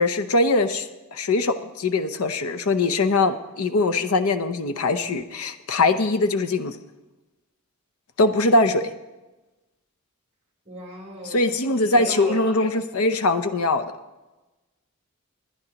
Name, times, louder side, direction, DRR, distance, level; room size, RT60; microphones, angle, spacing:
voice 1, 0.0-6.8 8.2-8.9 11.2-13.8, left 2 dB, 90° left, 10 dB, 0.7 m, -22 dB
voice 2, 10.7-11.5 11.9-12.5, right 1 dB, 30° right, -1 dB, 3.6 m, -36 dB
20.5 x 10.5 x 3.0 m, 1.1 s
head